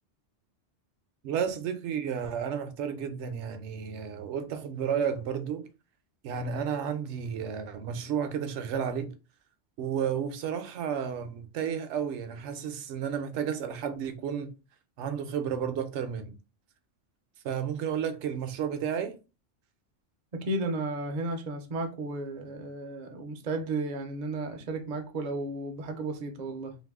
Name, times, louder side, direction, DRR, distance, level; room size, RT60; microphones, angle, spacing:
voice 1, 1.2-5.7 6.2-9.1 9.8-14.5 15.0-16.3 17.4-19.1, right 7 dB, 70° right, 0.9 m, -32 dB
voice 2, 20.3-26.8, right 2 dB, 50° right, 0.6 m, -33 dB
2.7 x 2.6 x 3.5 m
omnidirectional pair, 1.3 m